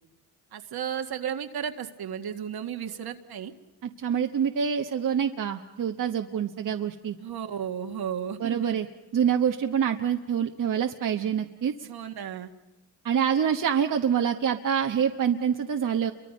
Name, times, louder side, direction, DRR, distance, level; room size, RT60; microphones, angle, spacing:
voice 1, 0.5-3.5 7.2-8.8 11.8-12.5, right 8 dB, 65° right, 6 dB, 1.9 m, -34 dB
voice 2, 3.8-7.2 8.4-8.9 9.1-11.9 13.0-16.1, right 8 dB, 50° right, 4 dB, 1.2 m, -26 dB
29.5 x 24.0 x 5.3 m, 1.1 s
cardioid pair, 85°, 40 cm